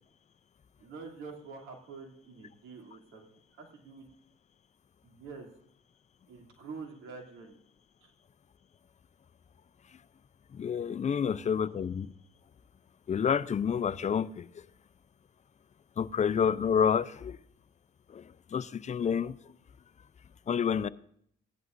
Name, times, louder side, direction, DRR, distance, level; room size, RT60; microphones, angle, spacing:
voice 1, 0.8-4.1 5.0-5.5 6.3-7.6 8.0-8.1 11.2-11.7, right 4 dB, 85° right, 2.8 m, -47 dB
voice 2, 10.5-12.1 13.1-14.6 16.0-17.4 18.1-18.2 18.5-19.3 20.5-20.9, left 7 dB, 35° left, 0.5 m, -29 dB
16.0 x 11.0 x 2.6 m
cardioid pair, 90°, 20 cm